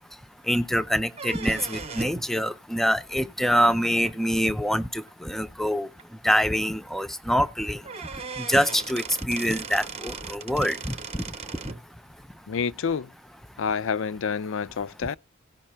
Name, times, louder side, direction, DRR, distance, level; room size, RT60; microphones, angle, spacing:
voice 1, 0.5-5.9 6.2-7.8 8.4-11.0 11.6-11.7, equal, ahead, 0.5 m, -25 dB
sound 1, 1.1-2.3 4.0-4.1 5.1-5.2 5.6-5.7 6.0-6.1 7.5-7.6 7.8-11.8, right 5 dB, 30° right, 0.8 m, -37 dB
voice 2, 12.5-13.1 13.6-15.2, left 6 dB, 65° left, 0.5 m, -28 dB
17.0 x 5.8 x 4.3 m
head